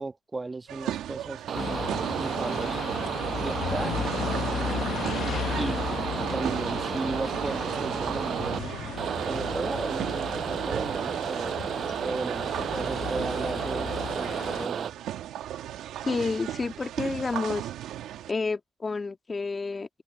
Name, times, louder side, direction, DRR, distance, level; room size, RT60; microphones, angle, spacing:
voice 1, 0.0-2.8 3.4-3.9 5.5-5.8 6.1-8.7 9.3-11.6 12.0-14.9, right 3 dB, 20° right, 2.0 m, -35 dB
sound 1, 0.7-18.3, right 11 dB, 80° right, 2.2 m, -38 dB
sound 2, 1.5-14.7, left 9 dB, 65° left, 1.4 m, -35 dB
sound 3, 1.5-8.6 9.0-14.9, right 8 dB, 60° right, 6.6 m, -32 dB
voice 2, 16.0-17.7 18.3-19.9, left 4 dB, 30° left, 1.9 m, -30 dB
cardioid pair, 90°, 0 cm